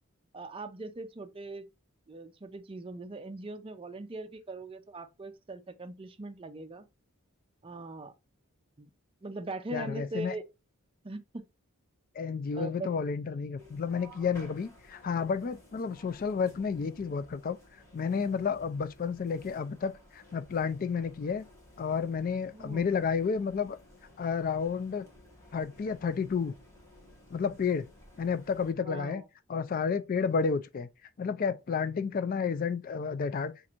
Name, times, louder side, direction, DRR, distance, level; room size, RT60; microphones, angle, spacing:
voice 1, 0.3-1.7 2.1-6.8 7.6-8.1 8.8-8.9 9.2-10.4 11.0-11.4 12.6-12.9 22.5-22.9 28.8-29.2, right 2 dB, 25° right, 0.4 m, -41 dB
voice 2, 9.7-10.3 12.1-17.6 17.9-21.5 21.8-23.8 24.2-25.1 25.5-26.5 27.3-27.9 28.2-29.2 29.5-30.9 31.2-33.5, left 6 dB, 40° left, 0.3 m, -31 dB
sound 1, 13.6-28.7, left 1 dB, 15° left, 1.2 m, -56 dB
6.1 x 2.5 x 2.9 m
head